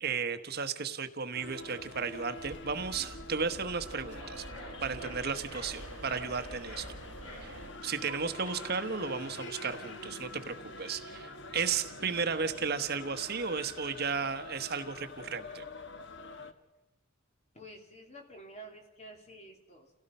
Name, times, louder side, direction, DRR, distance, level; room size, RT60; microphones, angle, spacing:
voice 1, 0.0-4.4 4.8-6.9 7.4-15.6, right 5 dB, 50° right, 10 dB, 1.1 m, -34 dB
sound 1, 1.3-16.5, left 2 dB, 60° left, 1.4 m, -46 dB
sound 2, 2.4-7.7, right 2 dB, 75° right, 1.4 m, -47 dB
sound 3, 3.7-9.9, left 2 dB, 85° left, 4.2 m, -50 dB
voice 2, 17.5-19.9, right 1 dB, 35° left, 2 dB, 3.4 m, -50 dB
30.0 x 17.0 x 5.5 m, 1.0 s
head